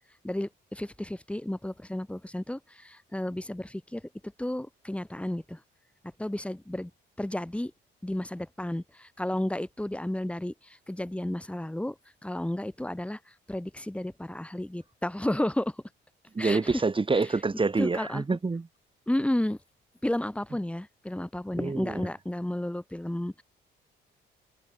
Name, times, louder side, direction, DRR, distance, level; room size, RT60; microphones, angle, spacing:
voice 1, 0.2-5.6 6.2-6.9 7.2-7.7 8.0-12.0 12.2-15.8 16.4-16.8 17.1-17.3 17.8-18.2 19.1-19.6 20.0-23.4, left 1 dB, 5° left, 4.2 m, -32 dB
voice 2, 16.3-18.7 21.6-22.1, right 3 dB, 25° right, 4.0 m, -27 dB
cardioid pair, 90°, 20 cm